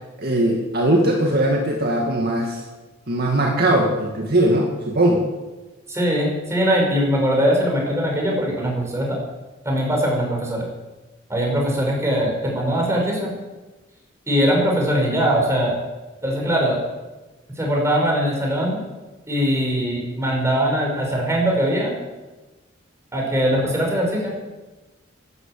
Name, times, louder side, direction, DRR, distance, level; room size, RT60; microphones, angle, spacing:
voice 1, 0.2-2.6 3.1-5.3, right 1 dB, 55° right, 0 dB, 2.2 m, -20 dB
voice 2, 5.9-9.2 9.6-10.7 11.3-13.3 14.3-15.8 16.2-16.8 17.6-18.8 19.3-22.0 23.1-24.3, equal, 15° right, -1 dB, 5.9 m, -21 dB
13.0 x 12.0 x 9.1 m, 1.1 s
head